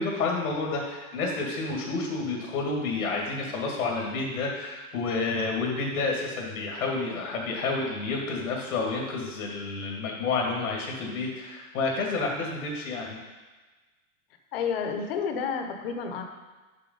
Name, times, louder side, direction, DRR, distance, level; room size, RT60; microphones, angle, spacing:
voice 1, 0.0-13.2, left 3 dB, 80° left, -1 dB, 2.2 m, -30 dB
voice 2, 14.5-16.2, left 6 dB, 40° left, 5 dB, 0.9 m, -30 dB
6.8 x 5.8 x 5.4 m, 1.3 s
supercardioid pair, 175°, 43 cm